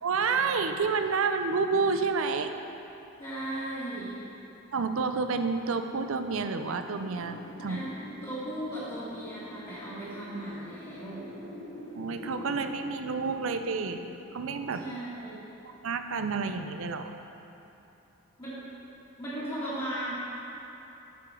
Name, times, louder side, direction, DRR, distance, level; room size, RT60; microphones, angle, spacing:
voice 1, 0.0-2.5 4.7-7.8 12.0-14.0 14.3-14.9 15.8-17.1, right 4 dB, 65° right, 8 dB, 0.5 m, -29 dB
voice 2, 3.2-4.2 7.7-7.9 8.2-11.3 14.8-15.4 18.4-18.6 19.2-20.1, right 1 dB, 25° left, -13 dB, 1.6 m, -36 dB
Wind, 6.8-15.5, left 1 dB, 50° left, 1.7 m, -45 dB
8.5 x 4.9 x 6.0 m, 2.9 s
head